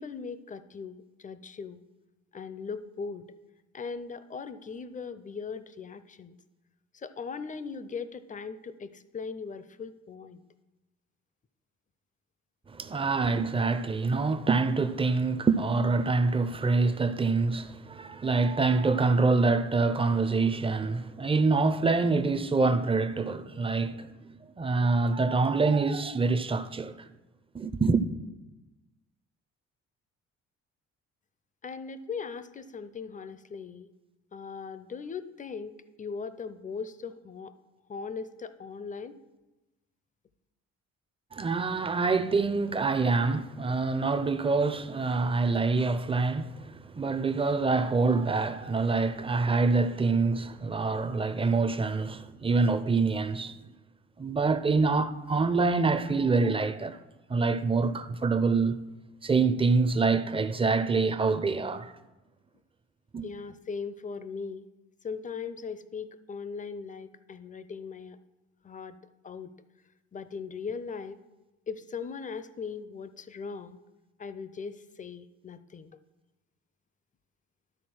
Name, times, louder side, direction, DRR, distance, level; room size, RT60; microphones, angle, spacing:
voice 1, 0.0-1.8 2.3-3.3 3.7-6.4 6.9-10.4 31.6-33.9 34.3-37.5 37.9-39.2 63.2-64.7 65.0-68.2 68.6-69.0 69.2-69.5 70.1-71.2 71.7-73.8 74.2-75.9, left 5 dB, 25° left, 0.5 m, -39 dB
voice 2, 12.7-24.1 24.6-27.1 27.5-28.0 41.3-53.6 54.2-57.0 57.3-58.8 59.2-61.9 63.1-63.2, right 4 dB, 20° right, 0.5 m, -26 dB
12.0 x 4.0 x 6.2 m
cardioid pair, 90°, 30 cm